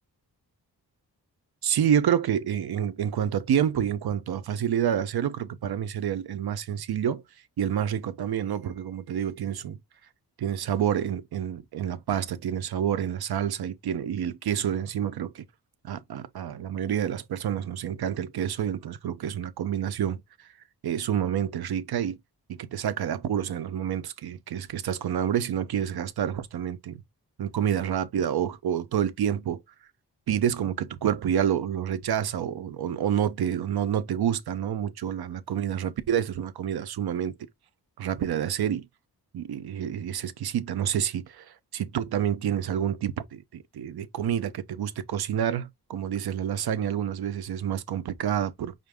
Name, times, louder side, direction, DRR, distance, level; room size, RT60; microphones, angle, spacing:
voice 1, 1.6-7.2 7.6-9.8 10.4-15.4 15.8-20.2 20.8-22.2 22.5-27.0 27.4-29.6 30.3-37.3 38.0-38.9 39.3-41.5 41.7-48.7, right 9 dB, 70° right, 0.7 m, -28 dB
5.7 x 2.6 x 3.4 m
wide cardioid pair, 180°, 39 cm